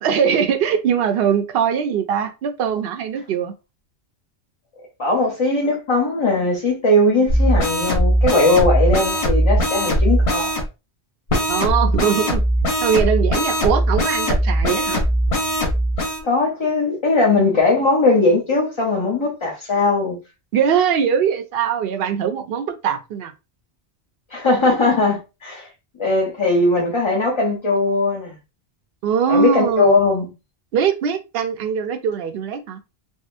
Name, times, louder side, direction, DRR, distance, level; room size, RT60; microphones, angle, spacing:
voice 1, 0.0-3.5 11.5-12.4 12.8-15.0 20.5-23.3 29.0-30.0 30.7-32.8, right 7 dB, 65° right, 0.7 m, -21 dB
voice 2, 5.0-10.6 16.2-20.2 24.3-25.7 26.0-28.4 29.3-30.3, left 2 dB, 30° left, 0.6 m, -19 dB
sound 1, 7.3-10.7 11.3-16.2, equal, 85° left, 1.2 m, -19 dB
3.6 x 2.1 x 2.5 m
omnidirectional pair, 1.1 m